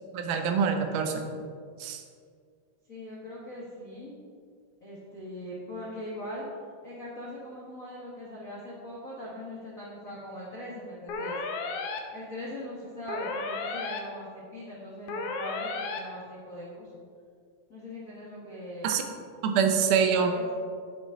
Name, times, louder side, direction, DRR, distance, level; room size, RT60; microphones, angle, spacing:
voice 1, 0.1-1.3 1.8-2.0 18.8-19.0 19.4-20.3, right 6 dB, 80° right, 5 dB, 2.2 m, -25 dB
voice 2, 2.9-4.1 4.8-6.5 6.8-11.4 12.1-17.0 17.7-19.0 20.1-20.5, left 1 dB, 60° left, -6 dB, 0.8 m, -41 dB
sound 1, 11.1-12.0 13.1-14.0 15.1-16.0, left 3 dB, 90° left, 1.3 m, -33 dB
8.2 x 7.9 x 3.7 m, 2.1 s
omnidirectional pair, 3.8 m